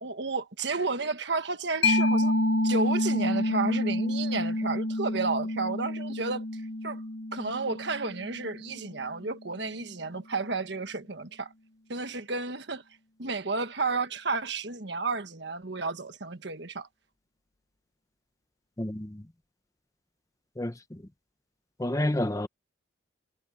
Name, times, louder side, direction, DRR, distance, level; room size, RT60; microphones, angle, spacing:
voice 1, 0.0-2.3 2.6-7.0 7.3-11.5 11.9-12.8 13.2-16.9, right 3 dB, 60° right, 1.5 m, -32 dB
Mallet percussion, 1.8-9.1, left 1 dB, 60° left, 1.1 m, -28 dB
voice 2, 18.8-19.2 20.6-21.0 21.8-22.5, left 1 dB, 15° left, 0.7 m, -29 dB
head